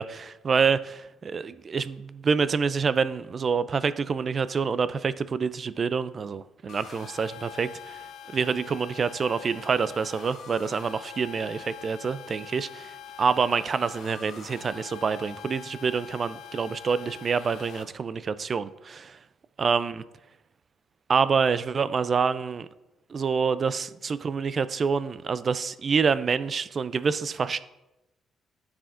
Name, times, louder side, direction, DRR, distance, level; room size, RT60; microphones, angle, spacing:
voice 1, 0.0-8.0 8.3-19.2 19.6-20.0 21.1-22.7 23.1-27.6, right 5 dB, 35° right, 15 dB, 0.3 m, -27 dB
sound 1, 6.7-17.8, left 8 dB, 70° left, 0.7 m, -44 dB
12.5 x 4.8 x 2.5 m, 0.95 s
cardioid pair, 130°, 0 cm